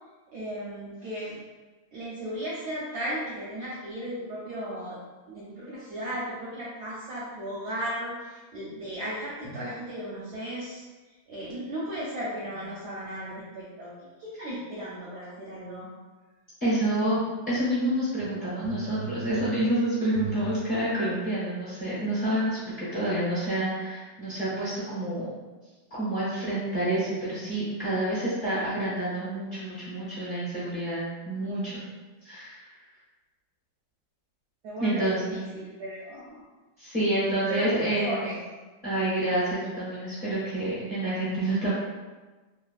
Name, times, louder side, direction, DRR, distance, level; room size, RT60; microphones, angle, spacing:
voice 1, 0.3-1.4 1.9-5.0 5.3-10.8 11.3-15.9 18.7-18.8 20.2-20.3 34.6-36.4 37.5-38.4, right 1 dB, 75° right, -7 dB, 1.0 m, -35 dB
voice 2, 16.6-25.3 25.9-31.9 32.2-32.7 34.8-35.4 36.8-38.3 38.8-41.7, right 1 dB, 35° left, -11 dB, 0.9 m, -28 dB
3.3 x 2.3 x 2.3 m, 1.3 s
omnidirectional pair, 2.2 m